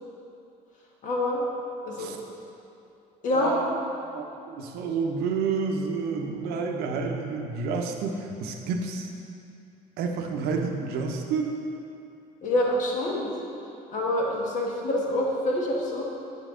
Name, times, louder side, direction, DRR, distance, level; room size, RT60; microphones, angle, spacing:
voice 1, 1.0-1.4 1.8-2.2 3.2-3.6 12.4-13.4 13.9-16.0, left 1 dB, 50° left, -2 dB, 1.4 m, -26 dB
voice 2, 3.3-3.7 4.1-9.1 10.0-11.6, right 5 dB, 75° right, 3 dB, 0.8 m, -29 dB
8.8 x 5.5 x 3.7 m, 2.7 s
cardioid pair, 140°, 16 cm